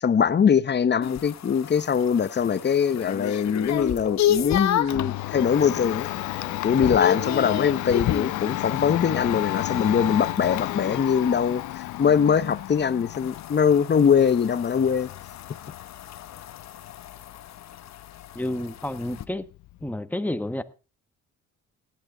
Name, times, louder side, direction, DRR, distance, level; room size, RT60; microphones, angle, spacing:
voice 1, 0.0-6.1 6.6-11.6 12.0-15.1, left 7 dB, 35° left, 0.9 m, -22 dB
sound 1, 1.0-5.1 5.6-6.0 6.3-8.4 10.9-19.3, left 11 dB, 60° left, 1.0 m, -31 dB
Domestic sounds home sounds, 4.1-19.9, left 16 dB, 80° left, 0.6 m, -33 dB
sound 2, 5.1-11.4, equal, 10° right, 5.7 m, -49 dB
voice 2, 18.3-19.5 19.8-20.6, left 1 dB, 5° left, 1.0 m, -30 dB
18.0 x 10.5 x 3.9 m
cardioid pair, 90°, 30 cm